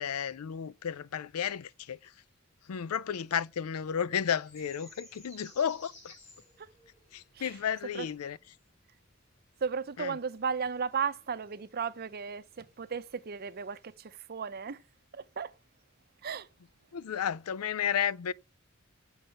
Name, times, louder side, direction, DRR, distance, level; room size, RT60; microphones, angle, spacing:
voice 1, 0.0-2.1 2.7-6.2 7.1-8.4 10.0-10.2 16.9-18.3, left 8 dB, 85° left, 0.5 m, -33 dB
sound 1, 4.4-13.9, left 2 dB, 35° left, 4.7 m, -59 dB
voice 2, 9.6-14.8 15.1-15.5 16.2-16.5, right 6 dB, 45° right, 0.6 m, -35 dB
7.9 x 5.5 x 7.7 m
head